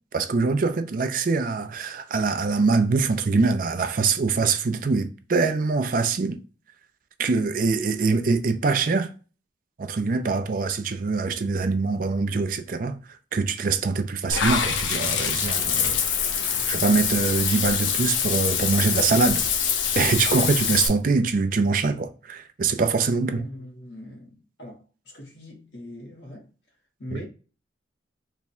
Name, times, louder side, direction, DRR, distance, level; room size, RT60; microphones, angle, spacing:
voice 1, 0.1-6.4 7.2-9.1 9.8-13.0 13.3-16.0 16.4-19.4 20.0-23.5 27.1-27.2, right 4 dB, 45° right, 0.4 m, -24 dB
Water / Bathtub (filling or washing), 14.3-20.9, left 7 dB, 85° left, 0.7 m, -25 dB
voice 2, 23.3-26.5 27.0-27.3, left 1 dB, 60° left, 1.2 m, -41 dB
3.5 x 2.2 x 4.2 m
head